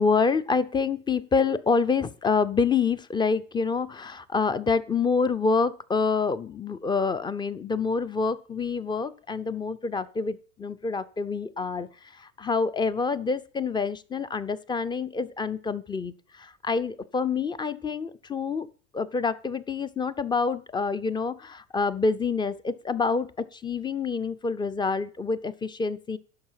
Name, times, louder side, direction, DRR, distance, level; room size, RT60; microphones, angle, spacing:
voice 1, 0.0-11.9 12.1-18.7 18.9-26.2, left 4 dB, 10° left, 16 dB, 0.5 m, -27 dB
11.0 x 5.6 x 5.7 m, 0.41 s
hypercardioid pair, 105°, 37 cm